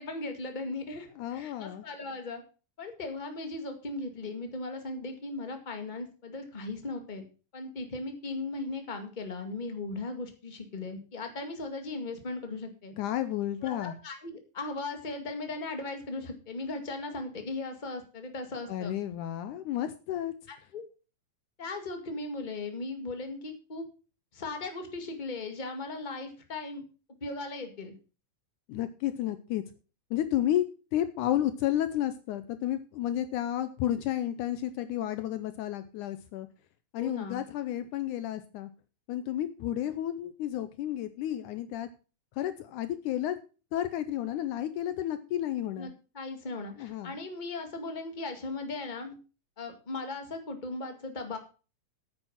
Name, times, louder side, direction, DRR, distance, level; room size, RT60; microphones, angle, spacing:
voice 1, 0.0-2.4 2.8-7.2 7.5-12.9 13.6-18.9 20.5-20.8 21.6-23.8 24.3-26.8 27.2-27.9 37.0-37.4 45.8-49.1 49.6-51.4, left 3 dB, 20° left, 5 dB, 1.4 m, -38 dB
voice 2, 1.2-1.8 13.0-14.0 18.7-20.3 28.7-29.6 30.1-30.6 30.9-36.5 36.9-38.7 39.1-41.9 42.4-43.4 43.7-45.9 46.8-47.1, left 12 dB, 75° left, 11 dB, 2.1 m, -31 dB
9.5 x 9.0 x 5.8 m, 0.35 s
omnidirectional pair, 3.8 m